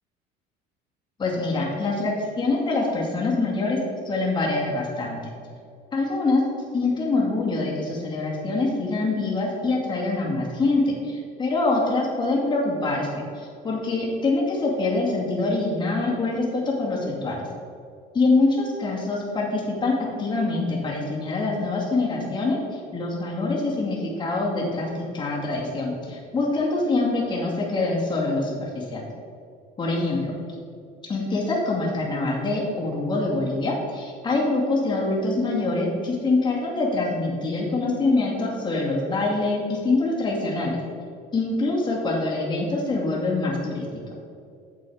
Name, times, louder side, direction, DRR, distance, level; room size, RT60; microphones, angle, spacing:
voice 1, 1.2-3.8 4.0-5.2 5.9-6.4 6.7-13.1 13.3-17.5 18.1-29.0 29.8-30.4 31.1-40.8 41.3-43.8, left 2 dB, 25° left, -3 dB, 2.4 m, -25 dB
8.7 x 6.9 x 4.9 m, 2.4 s
cardioid pair, 130°, 19 cm